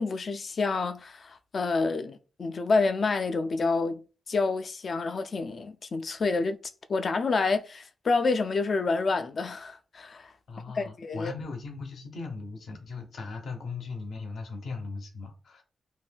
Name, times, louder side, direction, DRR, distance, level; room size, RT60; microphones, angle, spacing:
voice 1, 0.0-6.6 6.9-10.3 10.7-11.3, left 3 dB, 45° left, 0.3 m, -28 dB
voice 2, 10.5-15.6, left 4 dB, 70° left, 0.8 m, -38 dB
2.6 x 2.2 x 3.3 m
wide cardioid pair, 125°, 0 cm